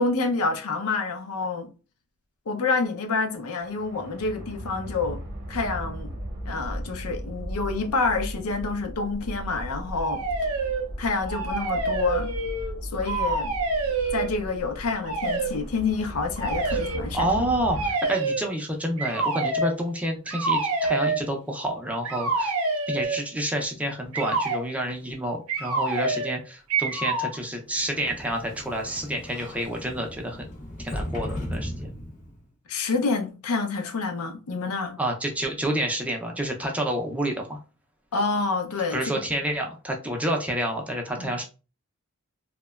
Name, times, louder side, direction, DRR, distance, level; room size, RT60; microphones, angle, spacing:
voice 1, 0.0-1.7 2.5-5.2 5.5-6.1 6.4-10.2 11.0-12.3 12.8-13.6 14.1-17.3 32.7-35.0 38.1-39.2 41.2-41.3, left 4 dB, 80° left, 0.5 m, -28 dB
sound 1, 3.6-17.9, equal, 45° right, 0.7 m, -36 dB
sound 2, 10.0-10.8 11.2-12.7 13.0-14.3 15.0-15.5 16.4-17.0 17.7-18.5 19.0-19.7 20.3-21.2 22.0-23.2 24.1-24.6 25.5-26.4 26.7-27.4, right 3 dB, 80° right, 0.6 m, -27 dB
voice 2, 17.1-22.5 22.9-30.5 30.8-31.9 35.0-37.6 38.9-41.4, right 1 dB, 5° right, 0.4 m, -29 dB
Sliding door, 27.7-32.5, equal, 35° left, 0.7 m, -36 dB
2.8 x 2.1 x 2.2 m
head